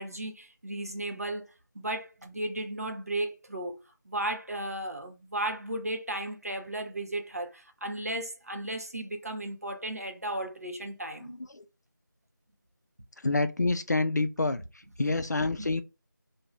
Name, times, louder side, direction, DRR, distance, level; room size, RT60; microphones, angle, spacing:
voice 1, 0.0-1.5 1.7-3.8 4.1-11.3 15.0-15.1 15.6-15.7, right 1 dB, 45° right, 0.5 m, -35 dB
voice 2, 11.2-11.7 13.2-14.6 15.0-15.8, left 3 dB, 55° left, 0.4 m, -27 dB
2.5 x 2.1 x 3.0 m
figure-of-eight pair, 180°, 11 cm